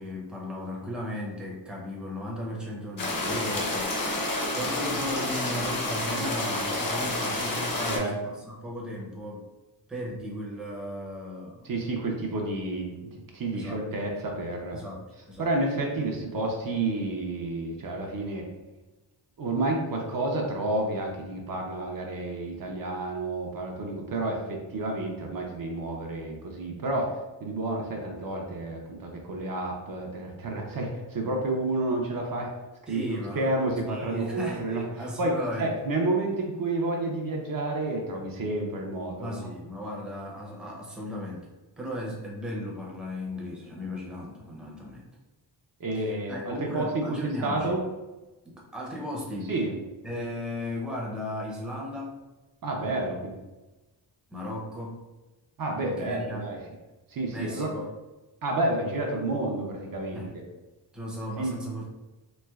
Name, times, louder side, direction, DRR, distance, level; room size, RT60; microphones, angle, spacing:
voice 1, 0.0-9.4 9.9-11.6 13.5-13.8 14.7-15.5 32.9-33.5 33.9-35.7 39.2-41.5 41.8-45.1 45.9-47.8 48.4-49.5 50.0-52.2 54.3-55.0 56.0-56.5 57.3-57.9 60.1-60.3 60.9-61.9, left 1 dB, ahead, -3 dB, 0.5 m, -36 dB
sound 1, 3.0-8.0, left 2 dB, 50° left, 0.8 m, -29 dB
voice 2, 7.8-8.2 11.6-14.8 15.4-18.5 19.4-32.5 32.9-39.4 45.8-47.8 49.5-49.7 52.6-53.3 55.6-56.6 57.1-57.7 58.4-60.4 61.4-61.6, right 2 dB, 50° right, 0 dB, 0.5 m, -30 dB
3.1 x 3.0 x 2.3 m, 1.1 s
wide cardioid pair, 155°, 44 cm